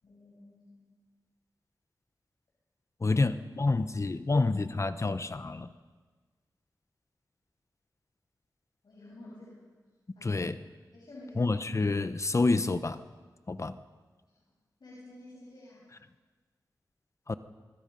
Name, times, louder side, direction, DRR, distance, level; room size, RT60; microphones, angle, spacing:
voice 1, 0.0-0.9 8.8-9.6 10.1-10.3 10.9-11.4 14.8-15.8, left 1 dB, 75° left, -6 dB, 6.6 m, -50 dB
voice 2, 3.0-5.7 10.2-10.6 11.4-13.0 13.5-13.8 17.3-17.4, left 3 dB, 45° left, 12 dB, 1.0 m, -28 dB
25.5 x 24.0 x 5.5 m, 1.4 s
cardioid pair, 55°, 7 cm